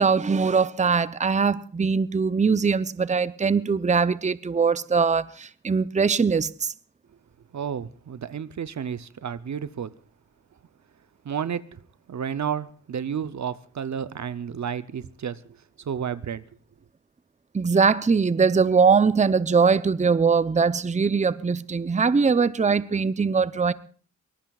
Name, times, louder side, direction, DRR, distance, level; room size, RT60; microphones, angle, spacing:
voice 1, 0.0-6.7 17.5-23.7, right 5 dB, 25° right, 0.6 m, -21 dB
voice 2, 7.5-9.9 11.2-11.8 12.1-15.4 15.8-16.4, right 8 dB, 70° right, 0.7 m, -31 dB
24.0 x 19.0 x 2.4 m
cardioid pair, 50°, 30 cm